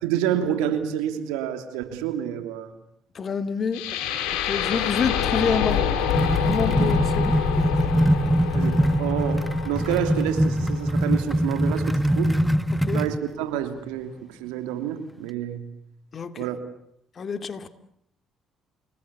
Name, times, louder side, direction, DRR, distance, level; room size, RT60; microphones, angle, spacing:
voice 1, 0.0-2.7 6.7-6.9 8.5-12.3 12.9-15.7 16.4-16.6, right 10 dB, 85° right, 9 dB, 3.0 m, -28 dB
voice 2, 3.1-3.8 4.4-5.8 6.4-7.9 12.7-13.0 16.1-16.3 17.2-17.7, left 6 dB, 50° left, 10 dB, 2.6 m, -27 dB
sound 1, 3.7-11.8, left 9 dB, 80° left, 5.8 m, -27 dB
sound 2, 5.6-13.2, equal, 5° right, 1.4 m, -23 dB
29.5 x 19.5 x 8.5 m, 0.73 s
supercardioid pair, 60°, 0 cm